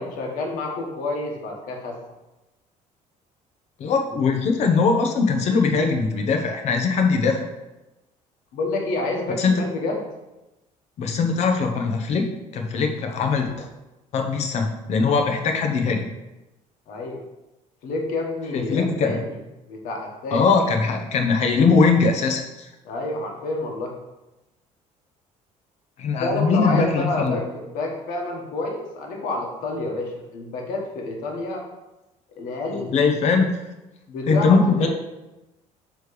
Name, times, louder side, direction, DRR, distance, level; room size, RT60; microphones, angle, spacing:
voice 1, 0.0-1.9 8.5-10.1 16.9-17.2 17.8-19.4 19.7-20.5 22.8-24.0 26.2-31.6 32.3-32.9 34.1-34.9, left 2 dB, 80° left, 0 dB, 1.5 m, -28 dB
voice 2, 3.8-7.5 9.4-9.7 11.0-13.7 14.1-16.0 18.5-19.2 20.3-22.4 26.0-27.4 32.7-33.5 34.3-34.9, left 4 dB, 50° left, 4 dB, 0.9 m, -21 dB
6.4 x 3.3 x 5.0 m, 1.0 s
cardioid pair, 150°, 14 cm